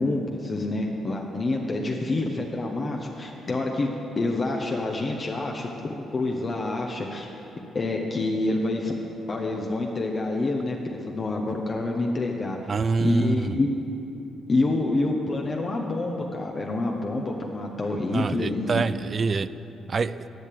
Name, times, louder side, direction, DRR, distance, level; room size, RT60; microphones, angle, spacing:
voice 1, 0.0-3.9 4.2-7.3 7.7-8.9 9.3-12.6 13.0-13.7 14.5-18.8, left 2 dB, 35° left, 1 dB, 1.0 m, -27 dB
voice 2, 12.7-13.6 18.1-19.5 19.9-20.2, right 4 dB, 40° right, 15 dB, 0.4 m, -26 dB
11.0 x 6.6 x 8.5 m, 3.0 s
cardioid pair, 90°, 0 cm